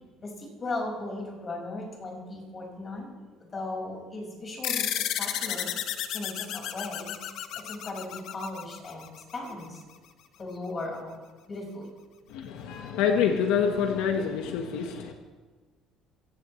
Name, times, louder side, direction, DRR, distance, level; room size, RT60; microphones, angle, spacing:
voice 1, 0.2-3.1 3.5-4.9 5.2-5.7 6.1-7.1 7.5-9.8 10.4-11.2 11.5-11.9, left 2 dB, 30° left, 0 dB, 5.5 m, -37 dB
sound 1, 4.6-9.5, left 11 dB, 70° left, 1.0 m, -33 dB
voice 2, 12.3-15.1, left 7 dB, 85° left, 3 dB, 1.4 m, -26 dB
23.5 x 16.0 x 3.2 m, 1.4 s
cardioid pair, 125°, 0 cm